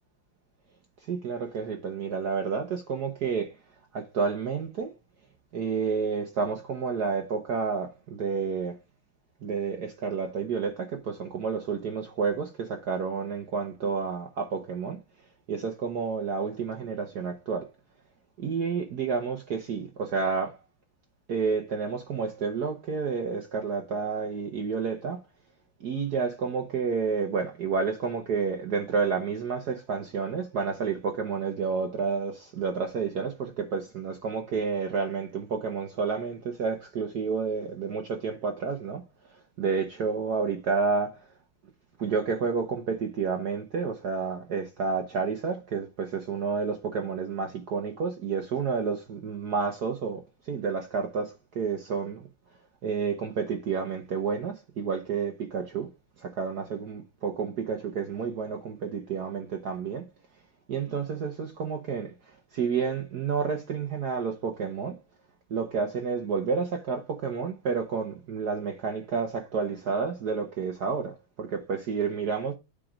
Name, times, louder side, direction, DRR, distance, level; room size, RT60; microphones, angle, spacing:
voice 1, 1.1-3.5 3.9-4.9 5.5-8.7 9.4-15.0 15.5-17.7 18.4-20.6 21.3-25.2 25.8-39.0 39.6-41.2 42.0-52.3 52.8-55.9 56.2-60.0 60.7-62.1 62.5-65.0 65.5-72.5, right 5 dB, 55° right, 1.4 m, -30 dB
8.8 x 3.7 x 5.1 m
omnidirectional pair, 2.3 m